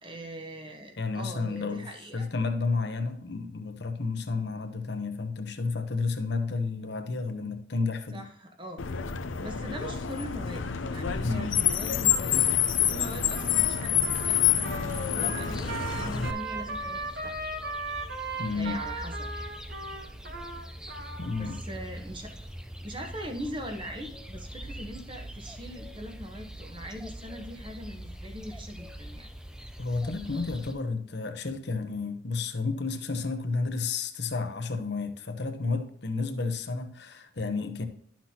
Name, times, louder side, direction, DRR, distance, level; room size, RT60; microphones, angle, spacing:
voice 1, 0.0-2.3 8.1-8.8 9.4-12.4 12.8-17.4 18.5-19.5 21.4-22.3 22.8-29.3, equal, 25° right, 1.2 m, -41 dB
voice 2, 1.0-1.9 2.1-8.2 11.2-11.6 18.4-18.8 21.2-21.8 29.8-37.9, left 4 dB, 60° left, 0.9 m, -31 dB
Car, 8.8-16.3, left 9 dB, 85° left, 0.6 m, -27 dB
Trumpet, 13.3-21.6, right 3 dB, 55° right, 1.1 m, -37 dB
sound 1, 15.4-30.7, equal, 5° right, 0.5 m, -43 dB
11.5 x 6.0 x 2.9 m
head